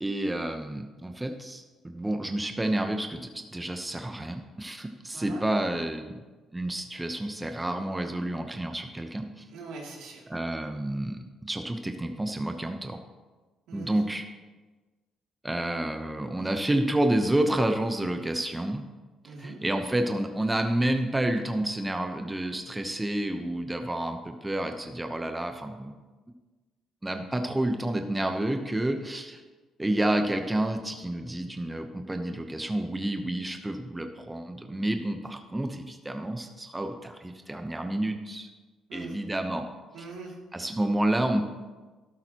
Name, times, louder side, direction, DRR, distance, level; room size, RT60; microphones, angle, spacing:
voice 1, 0.0-6.2 6.5-9.4 10.3-13.0 13.7-14.2 15.4-18.9 19.2-25.9 27.0-29.4 29.8-38.5 38.9-39.7 40.5-41.4, right 1 dB, 10° right, 5 dB, 0.9 m, -29 dB
voice 2, 9.5-10.2 13.7-14.0 19.2-19.6 38.9-39.1 39.9-40.3, right 4 dB, 85° right, -2 dB, 2.9 m, -42 dB
12.5 x 12.5 x 3.0 m, 1.3 s
cardioid pair, 95°, 0 cm